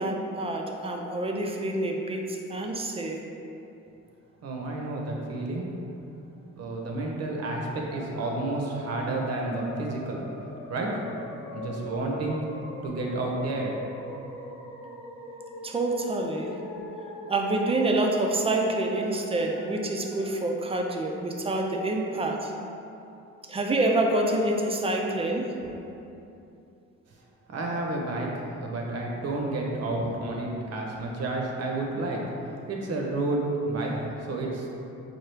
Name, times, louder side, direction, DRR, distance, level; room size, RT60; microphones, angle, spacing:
voice 1, 0.0-3.2 15.6-16.6 17.3-22.5 23.5-25.6, right 2 dB, 20° right, 1 dB, 0.4 m, -27 dB
voice 2, 4.4-5.7 6.6-10.2 10.7-10.9 11.5-12.4 12.8-14.0 27.5-32.2 32.7-33.9 34.3-34.7, right 2 dB, 55° right, -1 dB, 0.7 m, -30 dB
sound 1, 7.9-20.5, left 1 dB, 85° left, 0.7 m, -42 dB
4.5 x 2.3 x 3.2 m, 2.8 s
cardioid pair, 90°, 30 cm